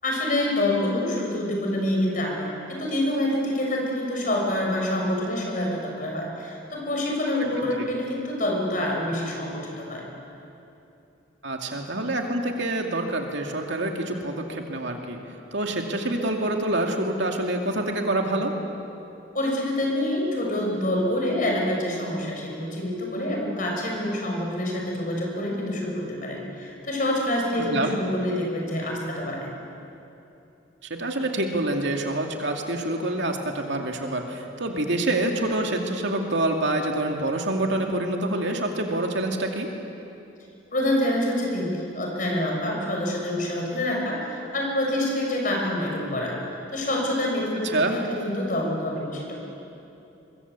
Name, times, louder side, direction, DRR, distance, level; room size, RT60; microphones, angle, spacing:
voice 1, 0.0-10.0 19.3-29.5 40.7-46.4 46.7-49.3, left 1 dB, 40° left, -1 dB, 6.2 m, -26 dB
voice 2, 11.4-15.2 15.5-18.5 27.6-28.0 30.9-39.7 47.6-48.0, right 1 dB, 65° right, 2 dB, 2.5 m, -26 dB
23.0 x 23.0 x 8.3 m, 2.8 s
head